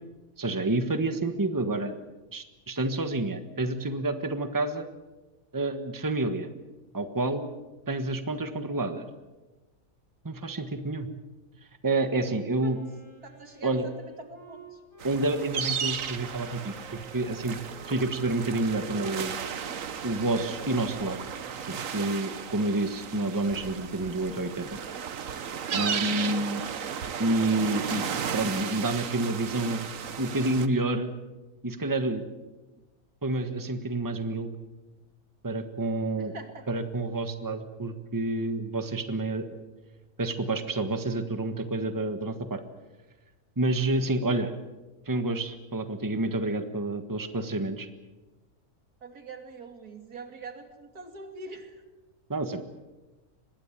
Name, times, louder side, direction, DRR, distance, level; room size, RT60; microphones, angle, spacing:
voice 1, 0.4-1.9 2.3-4.8 5.5-6.5 6.9-7.5 7.9-9.1 10.2-11.1 11.8-12.8 13.6-13.9 15.0-17.6 17.9-19.4 20.0-21.2 21.7-24.8 25.7-26.6 27.2-28.0 28.3-29.9 30.2-31.1 31.6-32.3 33.2-34.5 35.4-36.3 36.7-39.4 40.2-42.6 43.6-44.5 45.1-47.9 52.3-52.6, right 2 dB, 15° right, 8 dB, 1.4 m, -29 dB
Wind instrument woodwind instrument, 12.6-21.5, right 2 dB, 65° left, 5.5 m, -51 dB
voice 2, 13.2-13.7 14.0-14.8 36.2-36.7 49.0-51.7, right 3 dB, 85° right, 5 dB, 3.2 m, -44 dB
sound 1, 15.0-30.7, right 7 dB, 65° right, 1.5 m, -35 dB
25.0 x 21.0 x 7.5 m, 1.1 s
omnidirectional pair, 1.6 m